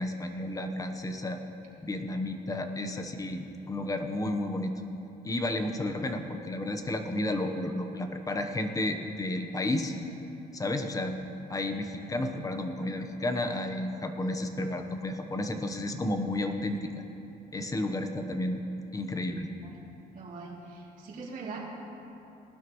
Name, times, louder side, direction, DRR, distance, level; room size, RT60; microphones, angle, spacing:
voice 1, 0.0-1.4 1.8-4.7 5.2-9.9 10.5-11.2 11.5-16.9 17.5-18.6 18.9-19.5, left 1 dB, 20° left, 6 dB, 1.0 m, -32 dB
voice 2, 20.1-21.6, right 4 dB, 50° right, -4 dB, 3.0 m, -42 dB
18.5 x 12.0 x 3.2 m, 2.9 s
cardioid pair, 110°, 17 cm